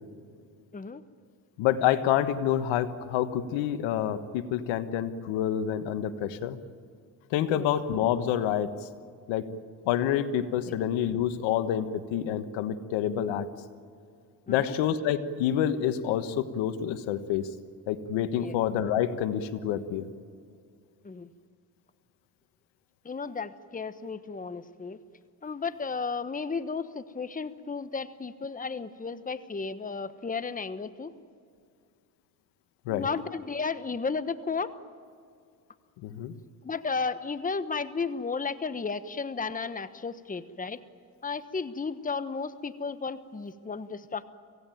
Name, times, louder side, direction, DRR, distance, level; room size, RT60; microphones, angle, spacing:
voice 1, 1.6-6.6 7.3-8.7 9.3-9.5 9.8-13.5 14.5-17.5 17.9-20.1 32.9-33.1 36.0-36.3, left 10 dB, 85° left, 10 dB, 1.5 m, -28 dB
voice 2, 23.0-25.0 25.4-31.1 32.9-34.7 36.6-40.8 41.2-44.2, left 4 dB, 20° left, 12 dB, 1.2 m, -33 dB
25.5 x 16.5 x 9.3 m, 2.3 s
supercardioid pair, 80°, 45 cm